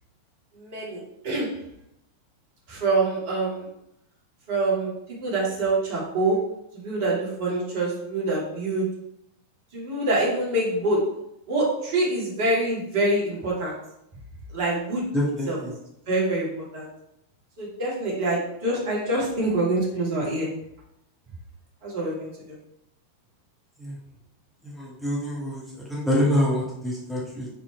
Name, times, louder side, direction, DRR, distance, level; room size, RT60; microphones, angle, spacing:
voice 1, 0.6-1.5 2.7-3.7 4.5-6.4 6.8-8.9 9.7-11.0 11.5-13.7 14.5-15.1 15.5-15.6 16.1-16.9 17.6-20.5 21.8-22.3, right 2 dB, 50° right, -4 dB, 2.5 m, -25 dB
voice 2, 15.1-15.7 23.8-24.0 24.7-27.5, equal, ahead, -7 dB, 2.0 m, -26 dB
5.7 x 4.2 x 4.5 m, 0.79 s
figure-of-eight pair, 90°, 0 cm